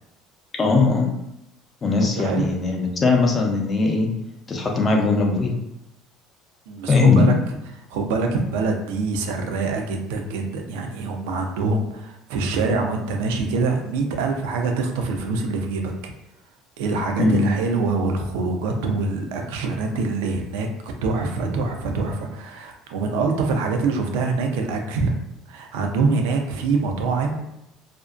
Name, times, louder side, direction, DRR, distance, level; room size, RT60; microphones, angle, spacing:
voice 1, 0.6-1.1 1.8-4.1 4.5-5.5 6.9-7.3 17.2-17.5, left 3 dB, 30° left, 1 dB, 0.5 m, -19 dB
voice 2, 2.2-2.5 6.7-7.3 7.9-16.1 16.8-25.2 25.5-27.5, right 3 dB, 85° right, 3 dB, 0.4 m, -25 dB
2.5 x 2.1 x 2.3 m, 0.84 s
supercardioid pair, 100°, 0 cm